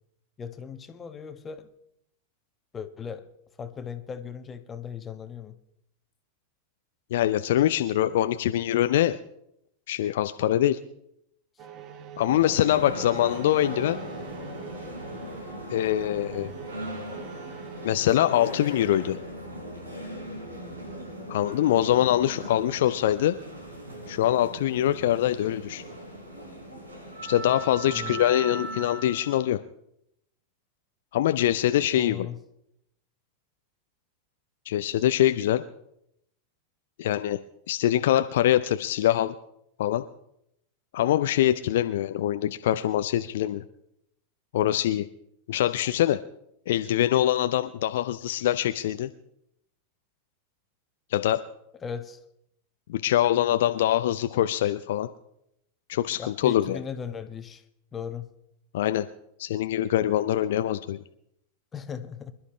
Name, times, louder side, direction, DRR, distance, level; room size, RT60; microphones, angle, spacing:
voice 1, 0.4-1.7 2.7-3.3 3.6-5.6 27.9-28.3 31.9-32.4 51.8-52.2 56.2-57.6 57.9-58.3 61.7-62.3, left 7 dB, 20° left, 8 dB, 1.2 m, -37 dB
voice 2, 7.1-9.2 9.9-10.8 12.2-14.0 15.7-16.5 17.8-19.2 21.3-23.4 24.1-25.8 27.2-29.6 31.1-32.3 34.7-35.6 37.0-37.4 37.7-39.3 39.8-40.0 40.9-43.6 44.5-45.1 45.5-46.2 46.7-49.1 51.1-51.4 52.9-55.1 55.9-56.8 58.7-59.1 59.4-61.0, left 12 dB, 55° left, 10 dB, 0.5 m, -24 dB
sound 1, 11.6-26.0, right 9 dB, 35° right, 1.1 m, -48 dB
sound 2, 12.3-29.4, right 1 dB, 75° right, 3.6 m, -39 dB
25.5 x 11.5 x 3.2 m, 0.76 s
figure-of-eight pair, 90°, 0 cm